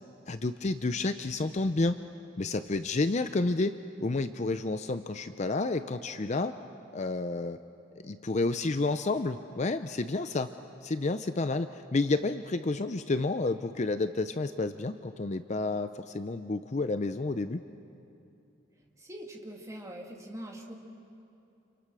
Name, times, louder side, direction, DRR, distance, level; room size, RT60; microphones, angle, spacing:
voice 1, 0.3-2.0 2.4-6.5 6.9-7.6 8.0-10.5 10.8-17.6, left 3 dB, 35° left, 10 dB, 0.5 m, -30 dB
voice 2, 19.0-20.7, right 1 dB, 15° right, 1 dB, 2.2 m, -43 dB
30.0 x 27.5 x 6.2 m, 2.7 s
head